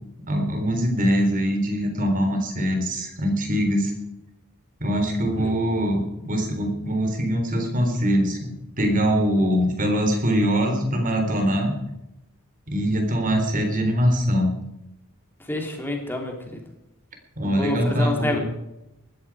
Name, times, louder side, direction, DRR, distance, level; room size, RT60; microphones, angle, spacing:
voice 1, 0.3-3.9 4.8-8.4 8.8-11.7 12.7-14.5 17.4-18.4, equal, 40° right, 4 dB, 3.8 m, -23 dB
voice 2, 15.5-16.6 17.4-18.4, left 1 dB, 10° left, 2 dB, 3.1 m, -28 dB
19.5 x 14.5 x 4.9 m, 0.90 s
head